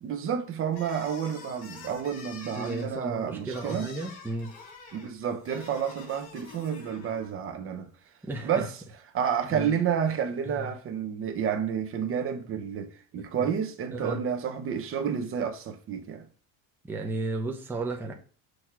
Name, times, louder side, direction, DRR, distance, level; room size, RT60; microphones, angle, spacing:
voice 1, 0.0-3.9 4.9-7.9 8.4-8.7 9.1-16.3, right 7 dB, 35° right, 0.9 m, -30 dB
sound 1, 0.7-7.3, left 4 dB, 75° left, 2.8 m, -47 dB
voice 2, 2.6-4.5 8.2-8.7 9.5-9.7 10.5-10.7 13.2-13.5 13.9-14.2 16.8-18.1, right 2 dB, 5° right, 0.8 m, -34 dB
6.3 x 3.5 x 5.9 m
cardioid pair, 165°, 38 cm